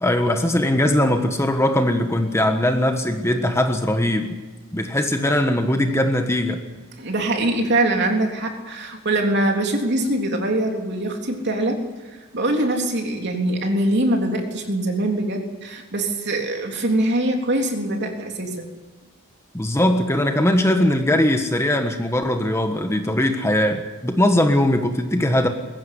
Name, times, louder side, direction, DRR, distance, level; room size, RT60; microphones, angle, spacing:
voice 1, 0.0-4.4 4.7-6.6 19.5-25.5, left 1 dB, 15° left, 5 dB, 1.4 m, -20 dB
voice 2, 7.0-18.7, right 1 dB, 55° right, 2 dB, 3.5 m, -23 dB
22.0 x 15.5 x 9.7 m, 1.3 s
head